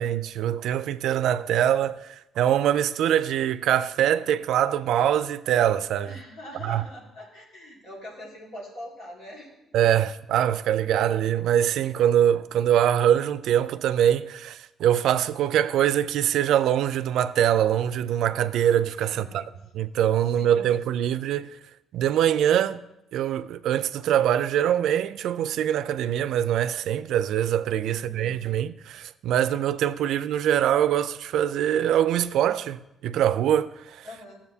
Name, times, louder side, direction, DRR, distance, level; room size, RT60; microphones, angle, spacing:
voice 1, 0.0-6.2 6.6-6.8 9.7-19.4 19.7-21.6 21.9-22.8 23.1-34.1, right 10 dB, 80° right, 0.3 m, -23 dB
voice 2, 6.0-9.7 19.0-19.6 20.4-21.2 27.8-28.5 34.0-34.4, left 1 dB, 80° left, 2.5 m, -43 dB
13.5 x 7.2 x 2.8 m
cardioid pair, 90°, 0 cm